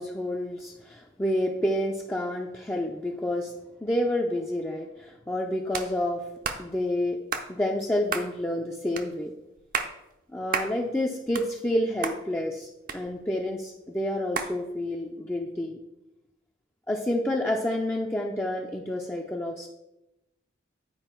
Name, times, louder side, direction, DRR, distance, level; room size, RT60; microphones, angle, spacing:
voice 1, 0.0-3.5 3.8-6.2 6.6-7.2 7.5-9.3 10.3-15.8 16.9-19.7, left 1 dB, 10° left, -1 dB, 0.5 m, -29 dB
sound 1, 5.7-5.9 6.4-6.6 7.3-7.5 8.1-8.3 9.0-9.1 9.6-9.9 10.5-10.7 11.1-11.8 12.0-12.2 12.9-13.5 14.4-14.5, right 5 dB, 45° right, 0.6 m, -31 dB
8.8 x 4.9 x 4.4 m, 0.93 s
head